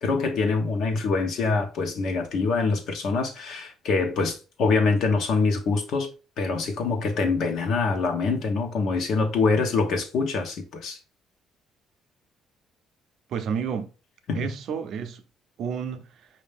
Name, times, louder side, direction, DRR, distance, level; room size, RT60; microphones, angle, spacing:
voice 1, 0.0-6.1 6.4-11.0 14.3-14.5, left 4 dB, 60° left, 1.0 m, -25 dB
voice 2, 13.3-13.9 14.3-15.2 15.6-16.3, right 7 dB, 55° right, 0.6 m, -31 dB
5.4 x 2.7 x 3.4 m
cardioid pair, 165°, 0 cm